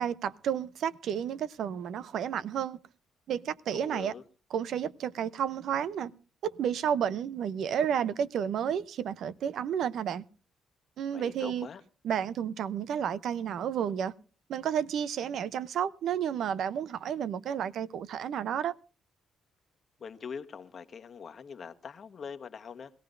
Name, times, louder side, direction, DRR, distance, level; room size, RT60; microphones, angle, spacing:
voice 1, 0.0-2.8 3.3-4.1 4.5-6.1 6.4-10.2 11.0-11.7 12.0-14.1 14.5-18.7, right 8 dB, 70° right, 0.6 m, -31 dB
voice 2, 3.7-4.2 11.1-11.8 20.0-22.9, left 6 dB, 50° left, 1.2 m, -43 dB
22.0 x 16.0 x 2.6 m
cardioid pair, 90°, 0 cm